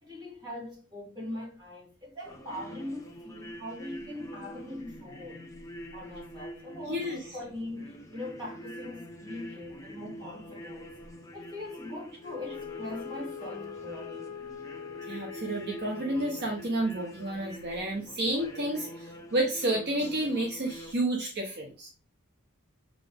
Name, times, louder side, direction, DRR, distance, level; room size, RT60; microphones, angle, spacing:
voice 1, 0.0-5.5 5.9-11.0 11.3-14.4, left 1 dB, 20° right, 2.5 m, -41 dB
sound 1, 2.2-20.9, equal, 15° left, 0.9 m, -46 dB
voice 2, 6.9-7.2 15.1-21.9, right 1 dB, 50° right, 0.9 m, -30 dB
Wind instrument woodwind instrument, 12.2-16.8, left 7 dB, 75° left, 0.8 m, -42 dB
7.4 x 3.9 x 3.5 m
head